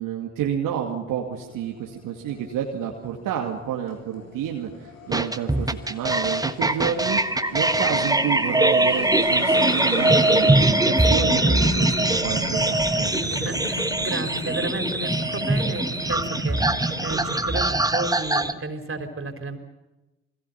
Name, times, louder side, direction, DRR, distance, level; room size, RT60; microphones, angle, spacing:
voice 1, 0.0-7.2 7.5-13.2, right 9 dB, 75° right, 0 dB, 2.4 m, -29 dB
sound 1, 1.5-17.6, left 2 dB, 75° left, 4.3 m, -34 dB
sound 2, 5.1-18.5, right 2 dB, 10° right, 1.4 m, -22 dB
voice 2, 13.3-19.6, right 2 dB, 40° right, 5 dB, 4.7 m, -32 dB
28.5 x 21.0 x 5.8 m, 1.0 s
hypercardioid pair, 45°, 33 cm